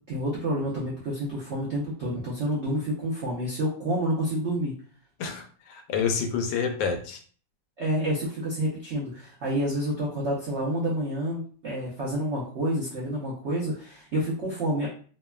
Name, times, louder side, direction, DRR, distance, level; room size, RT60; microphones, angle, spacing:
voice 1, 0.1-4.7 7.8-14.9, right 1 dB, 80° right, -5 dB, 0.6 m, -29 dB
voice 2, 5.2-7.2, left 6 dB, 90° left, 5 dB, 1.3 m, -28 dB
3.3 x 2.1 x 2.2 m, 0.44 s
omnidirectional pair, 2.0 m